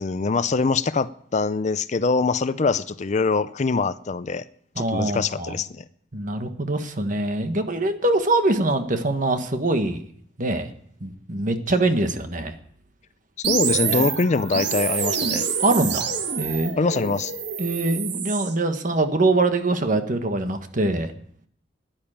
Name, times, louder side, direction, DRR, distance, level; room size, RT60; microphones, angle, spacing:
voice 1, 0.0-4.4 4.8-5.8 13.5-15.5 16.8-17.3, left 4 dB, 40° left, 15 dB, 0.5 m, -23 dB
voice 2, 4.7-5.5 6.1-10.0 10.4-10.7 11.0-12.5 13.9-14.1 15.6-16.1 16.4-16.7 17.6-21.1, right 2 dB, 45° right, 7 dB, 1.4 m, -23 dB
sound 1, 13.4-18.5, right 6 dB, 65° right, 1.5 m, -27 dB
11.5 x 10.5 x 8.9 m, 0.64 s
head